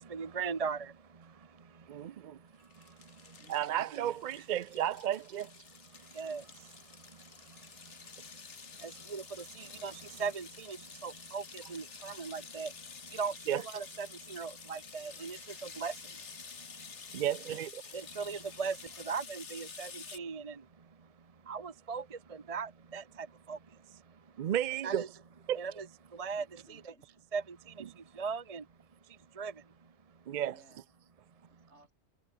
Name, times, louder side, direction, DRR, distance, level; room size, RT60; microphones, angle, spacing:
voice 1, 0.1-0.8 6.2-6.4 9.1-9.2 9.6-9.9 10.2-10.8 11.0-12.7 13.2-15.4 15.8-15.9 17.9-18.8 19.1-20.5 21.5-22.0 22.5-23.0 23.5-23.6 24.8-25.1 25.5-25.9 26.2-26.4 27.3-27.4 28.2-28.6 29.4-29.5, right 5 dB, 35° right, 1.0 m, -37 dB
voice 2, 1.9-2.4 3.5-5.5 13.5-13.6 17.1-17.8 24.4-25.0 25.5-25.6 30.3-30.6, right 11 dB, 55° right, 0.5 m, -33 dB
sound 1, 2.6-20.2, left 5 dB, 85° left, 1.9 m, -50 dB
voice 3, 3.4-3.8 17.2-17.7 26.4-27.1 30.5-30.9 31.6-31.9, right 1 dB, 75° right, 8.1 m, -61 dB
omnidirectional pair, 1.2 m